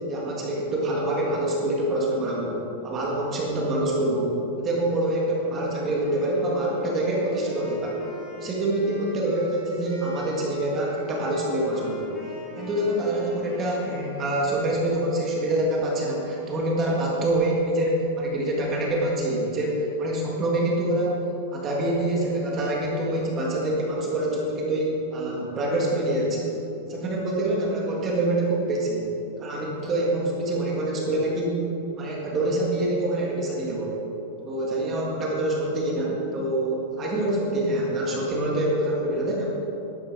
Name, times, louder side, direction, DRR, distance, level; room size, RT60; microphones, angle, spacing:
voice 1, 0.1-8.0 8.4-12.1 12.6-21.2 21.5-26.5 26.9-29.1 29.4-31.7 32.0-34.0 34.4-39.5, right 1 dB, 20° right, -3 dB, 1.7 m, -26 dB
Wind instrument woodwind instrument, 5.7-14.5, left 1 dB, 15° left, 2.2 m, -42 dB
11.5 x 11.0 x 4.7 m, 3.0 s
supercardioid pair, 180°, 0 cm